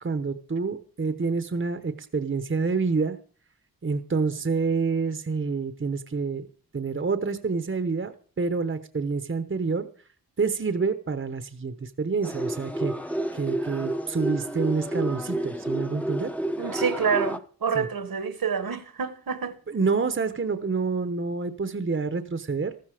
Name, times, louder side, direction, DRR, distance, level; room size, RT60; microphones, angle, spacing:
voice 1, 0.0-3.2 3.8-6.5 6.7-9.9 10.4-12.9 13.3-16.3 17.7-17.9 19.7-22.7, right 4 dB, 35° right, 1.0 m, -27 dB
sound 1, 12.2-17.4, right 1 dB, 5° left, 0.9 m, -30 dB
voice 2, 16.6-19.5, right 6 dB, 75° right, 1.6 m, -27 dB
14.0 x 13.5 x 5.0 m
wide cardioid pair, 110°, 36 cm